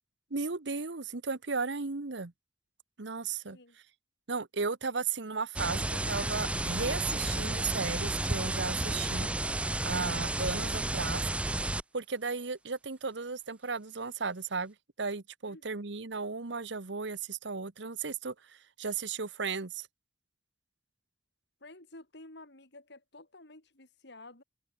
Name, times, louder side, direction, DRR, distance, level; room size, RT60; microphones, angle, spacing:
voice 1, 0.3-2.3 3.0-3.6 4.3-9.3 9.8-11.2 11.9-19.9, right 4 dB, 70° right, 1.2 m, -35 dB
sound 1, 5.6-11.8, right 2 dB, 5° right, 0.3 m, -32 dB
voice 2, 15.4-15.8 21.6-24.4, left 2 dB, 65° left, 4.8 m, -52 dB
head